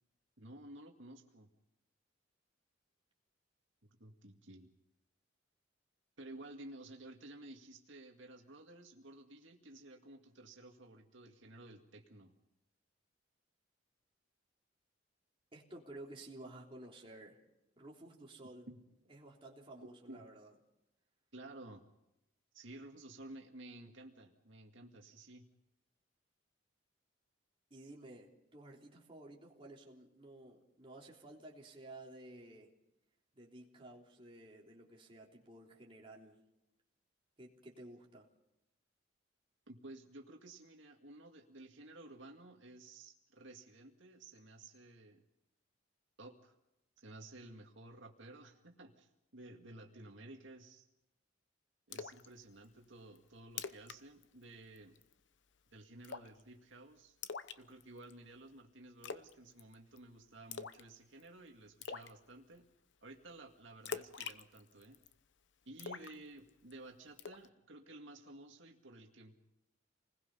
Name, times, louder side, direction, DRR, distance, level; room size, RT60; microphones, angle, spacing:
voice 1, 0.4-1.5 3.9-4.7 6.2-12.4 18.7-18.8 20.1-20.3 21.3-21.8 22.5-25.5 39.7-45.2 46.2-46.5 47.0-50.8 51.9-55.0 55.7-57.2 57.6-62.7 63.0-65.0 65.7-69.3, right 2 dB, 75° right, 2 dB, 2.1 m, -54 dB
voice 2, 15.5-17.4 17.8-18.7 19.1-20.5 27.7-32.7 33.3-36.4 37.4-38.3, right 1 dB, 30° right, -2 dB, 3.5 m, -53 dB
Splash splatter, 51.9-52.3 52.6-52.7 53.1-53.2 53.5-54.0 54.2-54.4 54.8-55.1 56.0-56.4 57.2-58.1 59.0-59.3 59.6-60.0 60.5-60.9 61.2-61.3 61.8-62.1 63.8-65.1 65.8-66.7 67.2-67.5, left 6 dB, 65° left, 0.8 m, -44 dB
28.0 x 20.5 x 5.6 m, 0.89 s
head